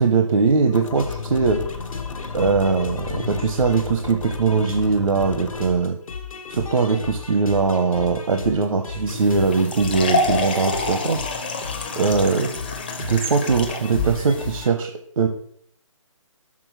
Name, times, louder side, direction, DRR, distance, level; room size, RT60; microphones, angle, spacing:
voice 1, 0.0-1.6 2.3-6.0 6.5-11.2 12.0-12.5 13.0-14.9 15.2-15.3, right 4 dB, 75° right, 5 dB, 0.8 m, -20 dB
sound 1, 0.7-5.7, left 5 dB, 65° left, 0.7 m, -34 dB
sound 2, 0.9-14.7, left 5 dB, 90° left, 1.2 m, -36 dB
sound 3, 9.1-14.6, left 2 dB, 20° left, 0.5 m, -28 dB
6.1 x 4.3 x 4.6 m, 0.66 s
hypercardioid pair, 170°, 17 cm